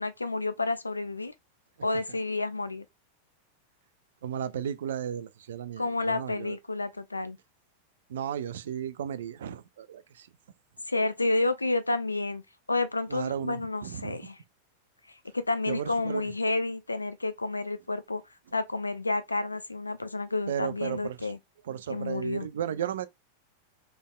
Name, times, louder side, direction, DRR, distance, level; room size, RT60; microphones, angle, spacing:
voice 1, 0.0-1.3 1.8-2.8 5.8-7.4 10.9-12.4 12.7-14.4 15.3-18.2 18.5-21.4 21.9-22.5, left 2 dB, 80° left, 0.4 m, -30 dB
voice 2, 4.2-6.6 8.1-10.3 13.1-14.2 15.7-16.3 20.5-21.2 21.7-23.1, right 9 dB, 60° right, 0.4 m, -34 dB
3.9 x 3.4 x 2.3 m
figure-of-eight pair, 90°, 0 cm